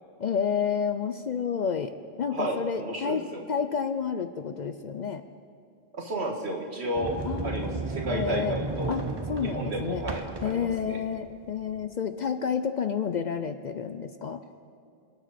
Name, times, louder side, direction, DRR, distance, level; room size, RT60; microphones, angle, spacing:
voice 1, 0.2-5.2 7.3-7.8 8.1-8.5 8.9-10.0 10.4-14.4, left 7 dB, 55° left, 10 dB, 0.5 m, -30 dB
voice 2, 2.3-3.4 5.9-7.2 7.4-9.0 9.4-11.0, right 1 dB, 75° right, 1 dB, 1.9 m, -32 dB
Sliding door, 6.9-11.8, right 3 dB, 25° right, 0.7 m, -34 dB
26.5 x 9.2 x 4.2 m, 2.5 s
omnidirectional pair, 1.1 m